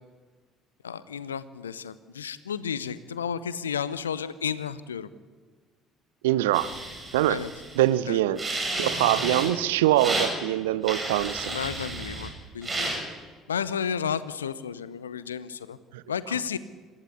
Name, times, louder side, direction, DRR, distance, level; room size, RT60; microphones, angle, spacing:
voice 1, 0.8-5.1 7.3-7.5 8.1-8.2 11.4-12.9 13.5-15.8 16.1-16.6, left 7 dB, 80° left, 17 dB, 0.7 m, -32 dB
voice 2, 6.2-6.7 7.1-7.4 7.8-8.4 8.8-11.5 15.9-16.0, right 14 dB, 70° right, 16 dB, 0.7 m, -23 dB
sound 1, 6.5-7.8 8.4-9.5 10.0-10.3 10.8-12.3 12.6-13.0, right 2 dB, 25° right, 7.4 m, -31 dB
26.0 x 15.0 x 8.5 m, 1.5 s
figure-of-eight pair, 55°, 0 cm